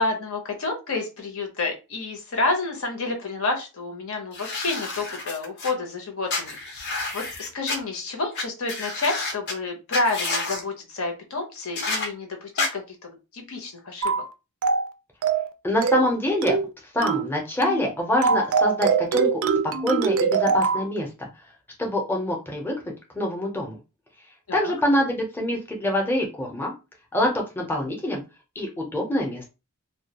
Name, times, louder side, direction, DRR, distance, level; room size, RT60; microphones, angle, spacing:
voice 1, 0.0-6.6 7.1-14.1 24.5-24.7, left 3 dB, 75° left, 3 dB, 0.8 m, -29 dB
sound 1, 4.3-5.7 6.3-7.8 8.4-8.5 8.7-9.5 9.9-10.6 11.8-12.1 12.6-12.7, left 3 dB, 50° left, 0.6 m, -29 dB
sound 2, 14.0-14.3 14.6-14.9 15.2-15.5 15.8-16.1 16.4-16.7 17.0-17.3 17.6-17.9 18.2-20.9, right 5 dB, 65° right, 0.3 m, -23 dB
voice 2, 15.6-16.6 16.9-19.3 19.6-21.3 21.8-23.8 24.5-26.7 27.1-28.2 28.6-29.5, left 1 dB, 10° left, 0 dB, 0.6 m, -25 dB
2.3 x 2.2 x 2.8 m, 0.28 s
head